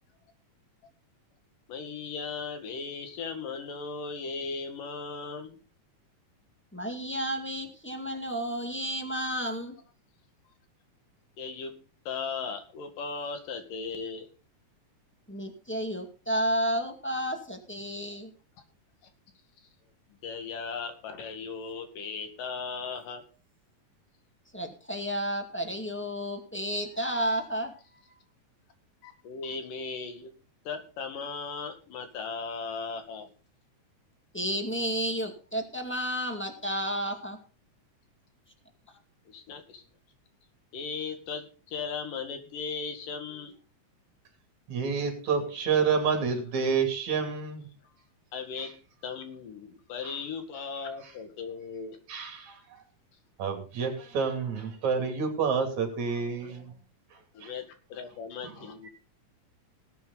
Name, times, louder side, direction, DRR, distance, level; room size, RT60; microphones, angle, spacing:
voice 1, 1.7-5.6 8.3-8.5 11.4-11.8 12.1-14.3 20.2-23.2 29.0-30.3 30.7-33.3 39.3-39.8 40.7-43.5 48.3-48.7 49.0-52.0 57.3-57.7 57.9-58.9, left 5 dB, 80° left, 7 dB, 3.7 m, -37 dB
voice 2, 6.7-9.8 15.3-18.3 24.5-27.7 34.3-37.4, equal, 5° left, 4 dB, 1.5 m, -31 dB
voice 3, 44.7-47.7 48.6-48.7 50.0-50.2 52.1-52.8 53.4-56.7 57.1-57.5 58.4-58.6 58.8-58.9, right 5 dB, 60° right, 5 dB, 3.9 m, -29 dB
19.0 x 8.4 x 4.0 m, 0.35 s
omnidirectional pair, 3.7 m